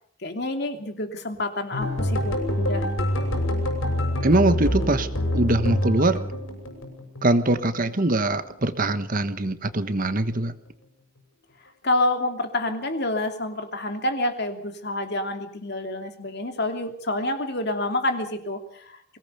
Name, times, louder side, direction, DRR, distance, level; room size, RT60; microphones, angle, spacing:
voice 1, 0.2-2.9 3.2-3.3 11.8-19.2, left 1 dB, 55° left, 6 dB, 2.9 m, -28 dB
sound 1, 1.7-7.9 8.2-9.2 9.5-9.8 10.2-10.4, left 1 dB, 85° left, 7.0 m, -26 dB
voice 2, 4.2-5.1 5.3-6.2 7.2-10.5, right 2 dB, 40° right, 11 dB, 1.3 m, -22 dB
23.0 x 18.5 x 6.8 m, 0.64 s
head